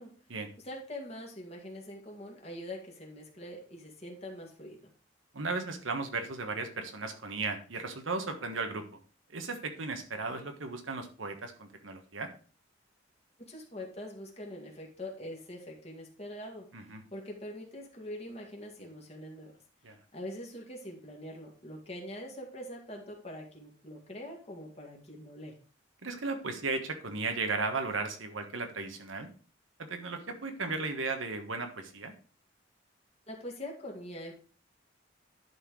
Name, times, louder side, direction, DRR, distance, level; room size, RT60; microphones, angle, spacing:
voice 1, 0.6-4.9 13.4-16.8 17.1-19.5 20.1-25.5 33.3-34.3, left 1 dB, 30° left, 0 dB, 2.1 m, -43 dB
voice 2, 5.3-8.8 9.3-12.3 16.7-17.0 19.8-20.0 26.0-29.3 29.8-32.1, right 3 dB, 80° right, 6 dB, 1.4 m, -35 dB
11.0 x 4.4 x 4.8 m, 0.39 s
head